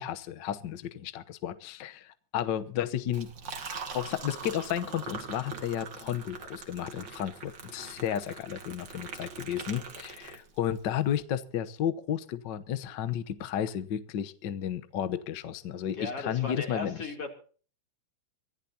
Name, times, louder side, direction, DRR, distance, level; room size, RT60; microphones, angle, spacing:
voice 1, 0.0-3.3 3.9-17.0, left 10 dB, 75° left, 11 dB, 1.0 m, -33 dB
Liquid, 3.1-10.8, right 5 dB, 40° right, 2.3 m, -42 dB
voice 2, 15.9-17.3, left 4 dB, 50° left, 1 dB, 4.0 m, -36 dB
24.5 x 15.5 x 2.9 m, 0.41 s
omnidirectional pair, 3.5 m